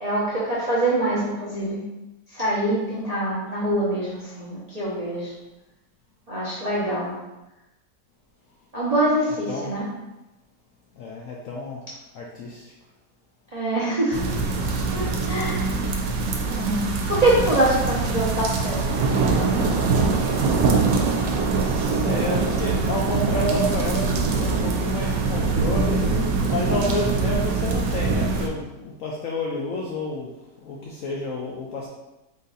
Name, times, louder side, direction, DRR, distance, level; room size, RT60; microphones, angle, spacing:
voice 1, 0.0-1.8 2.3-5.3 6.3-7.1 8.7-9.8 13.5-14.3 14.9-15.8 16.5-18.9, right 1 dB, 45° right, -8 dB, 0.5 m, -24 dB
voice 2, 11.0-11.8 12.1-12.7 21.6-26.1 26.5-30.3 30.6-31.9, left 2 dB, 70° left, -3 dB, 0.8 m, -30 dB
sound 1, 14.1-28.5, right 4 dB, 85° right, 1.3 m, -23 dB
3.9 x 2.5 x 3.9 m, 1.0 s
omnidirectional pair, 1.8 m